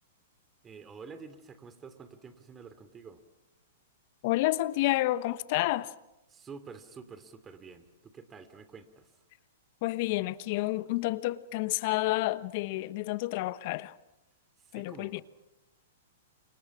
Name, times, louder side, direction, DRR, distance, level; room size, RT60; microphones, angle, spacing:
voice 1, 0.6-3.2 6.3-9.1 14.6-15.2, right 5 dB, 20° right, 3.0 m, -48 dB
voice 2, 4.2-5.9 9.8-13.9 14.7-15.2, left 18 dB, 50° left, 1.2 m, -29 dB
29.5 x 27.0 x 6.2 m
hypercardioid pair, 120°, 0 cm